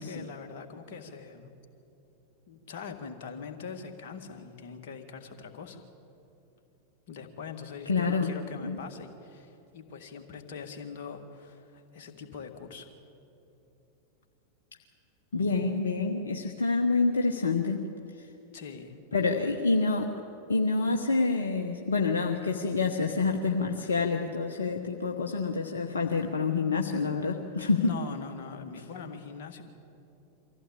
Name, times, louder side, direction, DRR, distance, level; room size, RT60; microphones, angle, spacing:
voice 1, 0.0-1.5 2.5-5.8 7.1-12.9 15.3-15.8 18.5-19.0 27.8-29.6, left 5 dB, 50° left, 4 dB, 2.1 m, -42 dB
voice 2, 7.9-8.3 8.6-8.8 15.3-17.8 19.1-20.1 20.5-27.9, left 4 dB, 70° left, 3 dB, 1.0 m, -27 dB
24.5 x 15.5 x 8.5 m, 2.8 s
figure-of-eight pair, 90°, 0 cm